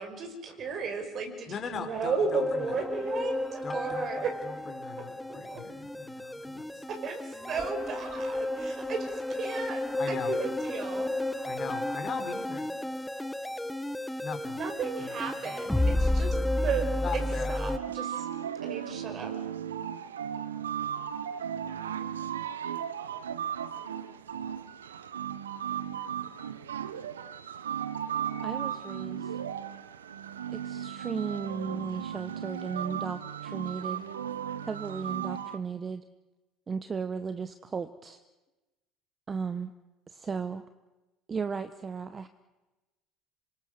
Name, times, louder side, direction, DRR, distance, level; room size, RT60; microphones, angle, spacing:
voice 1, 0.0-4.3 5.3-5.6 6.9-9.1 9.4-9.8 10.1-11.2 14.6-16.3 16.6-16.9 17.1-18.2 18.6-19.3, right 5 dB, 45° right, 5 dB, 5.4 m, -34 dB
voice 2, 1.5-2.9 3.6-4.1 4.4-6.8 10.0-10.4 11.4-12.7 14.2-14.6 15.0-15.6 17.0-17.6, left 6 dB, 45° left, 5 dB, 4.2 m, -40 dB
sound 1, 2.4-17.8, left 1 dB, 5° left, 1.0 m, -32 dB
sound 2, 17.7-35.6, right 9 dB, 90° right, 0.9 m, -36 dB
voice 3, 28.4-29.4 30.5-34.0 34.7-36.0 36.7-38.2 39.3-39.7 40.1-40.6 41.3-42.3, right 5 dB, 30° right, 11 dB, 1.1 m, -35 dB
27.0 x 23.5 x 6.5 m, 1.1 s
hypercardioid pair, 70°, 0 cm